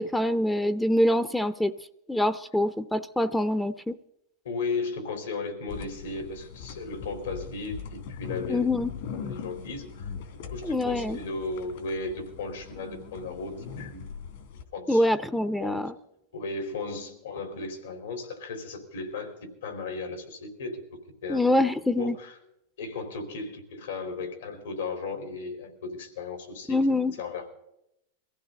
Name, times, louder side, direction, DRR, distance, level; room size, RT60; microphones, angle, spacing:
voice 1, 0.0-1.7 2.1-4.0 8.5-8.9 10.6-11.2 14.9-15.9 21.3-22.2 26.7-27.1, left 1 dB, 5° left, 0.5 m, -25 dB
voice 2, 4.4-8.7 9.1-10.1 10.5-14.1 14.7-15.1 15.6-15.9 16.3-20.8 21.2-21.4 22.0-22.3 22.8-27.5, left 3 dB, 85° left, 4.1 m, -35 dB
sound 1, 5.7-14.6, left 6 dB, 70° left, 2.7 m, -40 dB
23.0 x 15.5 x 4.0 m
supercardioid pair, 135°, 0 cm